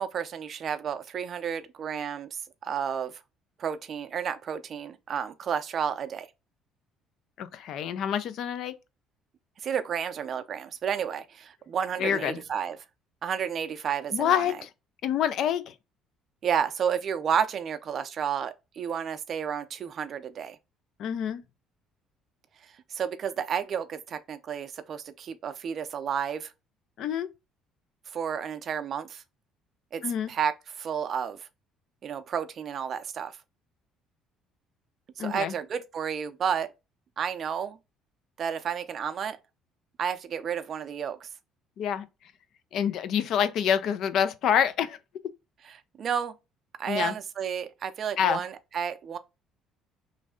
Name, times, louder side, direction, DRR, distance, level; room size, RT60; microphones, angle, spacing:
voice 1, 0.0-3.1 3.6-6.3 9.6-12.8 13.2-14.4 16.4-20.6 22.9-26.5 28.1-29.2 29.9-30.0 30.3-31.5 32.0-33.4 35.2-36.7 37.2-37.8 38.4-39.4 40.0-41.3 46.0-46.4 46.8-49.2, right 8 dB, 45° right, 0.4 m, -31 dB
voice 2, 7.4-8.7 12.0-12.4 14.1-14.7 15.0-15.7 21.0-21.4 27.0-27.3 30.0-30.3 35.2-35.5 41.8-42.0 42.7-45.0 46.9-47.1 48.2-48.4, left 8 dB, 60° left, 0.4 m, -27 dB
3.1 x 2.6 x 3.6 m
cardioid pair, 115°, 0 cm